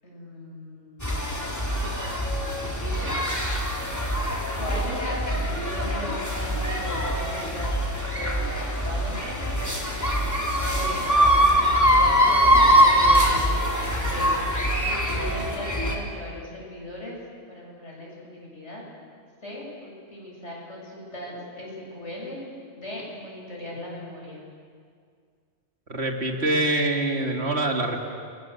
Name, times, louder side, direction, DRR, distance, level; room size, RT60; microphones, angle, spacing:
voice 1, 0.0-1.4 2.7-3.2 4.5-8.5 8.7-9.5 10.6-13.6 14.0-17.2 17.5-18.8 19.4-22.4 22.8-24.4, left 1 dB, 80° left, -3 dB, 7.6 m, -38 dB
sound 1, 1.0-16.0, equal, 15° left, 3.3 m, -23 dB
voice 2, 25.9-28.1, right 2 dB, 70° right, 2 dB, 3.0 m, -25 dB
29.5 x 23.0 x 8.1 m, 2.1 s
omnidirectional pair, 1.2 m